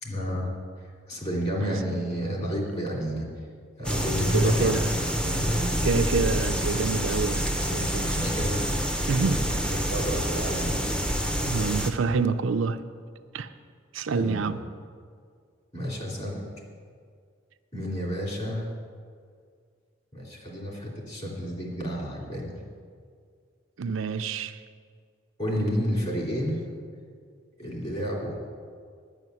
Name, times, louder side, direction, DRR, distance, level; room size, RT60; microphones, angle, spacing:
voice 1, 0.0-0.5 0.8-3.3 3.8-5.9 7.9-10.8 14.0-14.5 15.7-16.4 17.7-18.7 20.1-22.5 25.4-26.6 27.6-28.4, equal, 35° left, 2.9 m, -31 dB
sound 1, 3.8-11.9, equal, 5° left, 0.6 m, -27 dB
voice 2, 4.3-4.9 5.8-8.1 9.1-9.4 11.4-12.8 13.3-13.5 13.9-14.6 23.8-24.6, right 4 dB, 80° right, 0.5 m, -27 dB
11.0 x 6.4 x 9.2 m
head